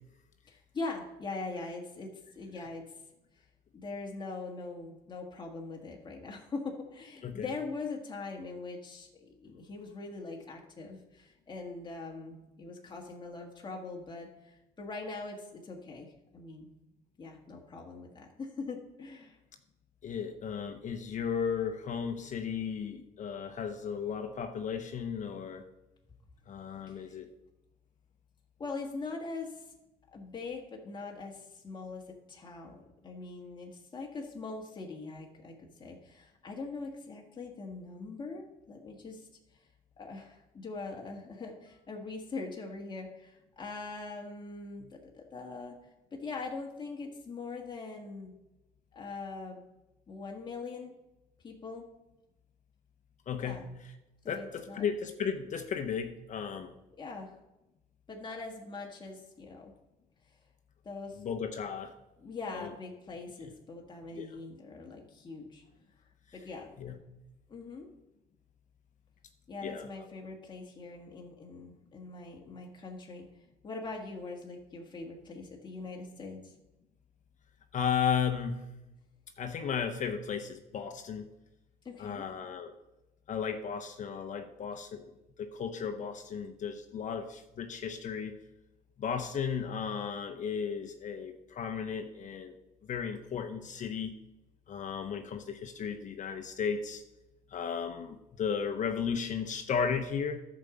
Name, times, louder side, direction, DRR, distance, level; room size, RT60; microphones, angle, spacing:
voice 1, 0.5-2.9 3.7-16.7 17.2-19.4 26.9-27.1 28.6-29.7 30.1-39.7 40.0-45.8 46.1-48.3 48.9-49.6 50.1-50.9 51.4-51.9 53.4-53.7 54.2-54.8 57.0-57.3 58.1-59.7 60.8-61.2 62.2-65.6 66.3-66.7 67.5-67.9 69.5-73.3 73.6-76.5 81.8-82.2, left 3 dB, 25° left, 0 dB, 1.7 m, -42 dB
voice 2, 20.0-25.6 26.5-27.3 53.3-53.7 54.3-56.8 61.2-61.9 62.5-62.7 64.1-64.3 66.8-67.0 69.6-69.9 77.7-78.6 79.4-81.3 82.0-82.7 83.3-85.1 85.4-88.3 89.0-92.5 92.8-94.1 94.7-97.0 97.5-100.4, left 7 dB, 45° left, 7 dB, 0.9 m, -35 dB
10.5 x 5.1 x 7.0 m, 0.96 s
cardioid pair, 110°, 17 cm